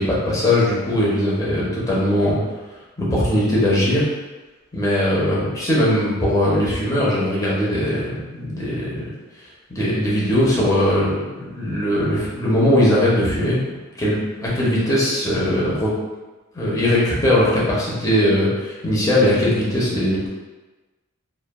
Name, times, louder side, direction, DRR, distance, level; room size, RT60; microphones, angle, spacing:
voice 1, 0.0-2.4 3.0-4.0 4.7-9.1 9.7-13.6 14.0-15.9 16.5-20.3, left 1 dB, 15° left, -7 dB, 0.7 m, -20 dB
3.1 x 2.3 x 2.2 m, 1.2 s
head